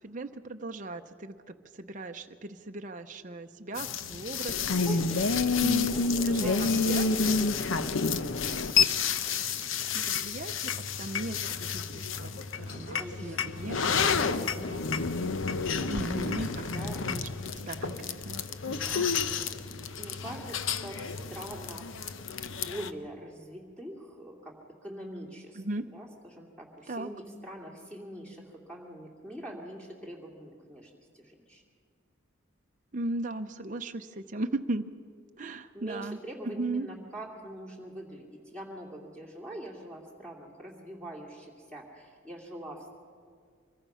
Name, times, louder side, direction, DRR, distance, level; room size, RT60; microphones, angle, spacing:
voice 1, 0.0-5.3 5.6-5.9 6.3-7.4 9.9-14.8 15.9-16.7 17.0-17.3 17.6-19.1 25.5-25.8 26.9-27.1 32.9-34.9 35.4-36.2 36.4-36.9, right 2 dB, 40° right, 5 dB, 0.7 m, -37 dB
sound 1, 3.8-22.9, left 5 dB, 70° left, 0.8 m, -30 dB
voice 2, 4.8-10.3 13.0-14.6 15.8-17.0 18.8-19.5 19.8-22.1 22.5-24.5 24.8-25.6 25.9-31.6 35.7-42.9, right 1 dB, 5° left, -2 dB, 2.6 m, -44 dB
Speech synthesizer, 11.7-11.9 12.3-12.4 12.6-13.0 13.3-13.4 13.9-14.1 14.4-14.5 14.8-15.1 15.8-16.1 16.8-17.3 17.7-18.3 18.7-18.9 19.5-19.6 20.3-20.7 21.1-21.6, equal, 50° left, 3.1 m, -53 dB
25.0 x 22.0 x 5.7 m, 2.1 s
head